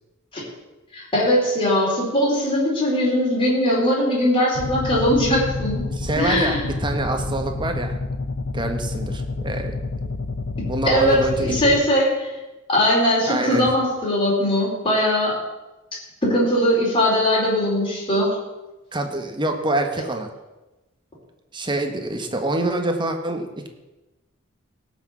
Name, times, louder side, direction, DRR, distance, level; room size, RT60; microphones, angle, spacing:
voice 1, 0.9-5.8 6.2-6.7 10.8-12.3 12.7-15.4 16.2-18.4, equal, 25° left, -5 dB, 4.6 m, -20 dB
sound 1, 4.5-11.8, left 3 dB, 65° left, 0.8 m, -28 dB
voice 2, 6.0-8.0 8.5-9.7 10.0-10.1 10.6-11.8 13.3-13.7 18.9-20.3 21.5-23.7, right 2 dB, 25° right, 4 dB, 1.5 m, -26 dB
17.5 x 6.3 x 7.3 m, 1.1 s
head